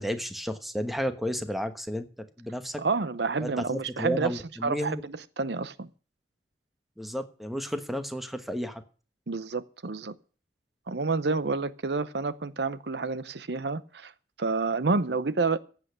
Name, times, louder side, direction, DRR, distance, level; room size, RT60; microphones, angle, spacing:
voice 1, 0.0-2.8 3.4-5.0 7.0-8.8, equal, ahead, 1.2 m, -32 dB
voice 2, 2.8-5.9 9.3-10.1 10.9-14.1 14.4-15.6, right 4 dB, 65° right, 0.7 m, -29 dB
15.0 x 8.4 x 6.6 m
head